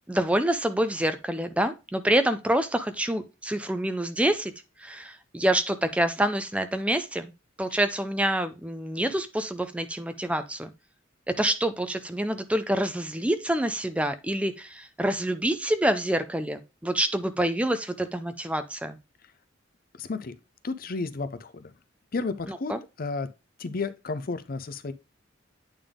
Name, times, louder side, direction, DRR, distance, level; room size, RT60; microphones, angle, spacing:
voice 1, 0.1-4.5 4.8-7.3 7.6-10.7 11.3-19.0 22.5-22.8, right 1 dB, 5° right, 0.4 m, -27 dB
voice 2, 20.0-20.4 20.6-21.7 22.1-22.7 23.0-23.3 23.6-24.9, left 3 dB, 50° left, 0.6 m, -32 dB
8.8 x 3.5 x 3.6 m
head